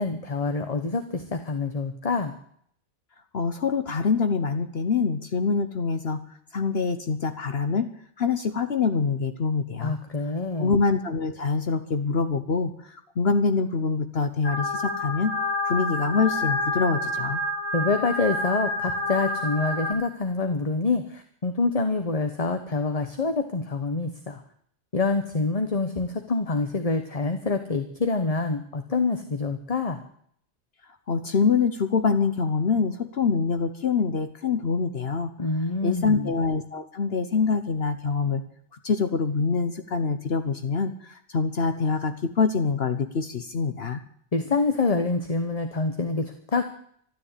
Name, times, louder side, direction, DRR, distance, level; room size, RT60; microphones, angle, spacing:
voice 1, 0.0-2.3 9.8-10.7 17.7-24.4 24.9-30.0 35.4-36.3 44.3-46.6, left 3 dB, 30° left, 7 dB, 1.1 m, -26 dB
voice 2, 3.3-6.2 6.5-7.9 8.2-10.0 10.6-15.3 15.6-17.4 31.1-35.3 35.8-38.4 38.8-44.0, left 5 dB, 60° left, 9 dB, 1.2 m, -25 dB
sound 1, 14.4-19.9, left 2 dB, 85° left, 2.2 m, -28 dB
13.0 x 12.5 x 8.4 m, 0.64 s
omnidirectional pair, 1.2 m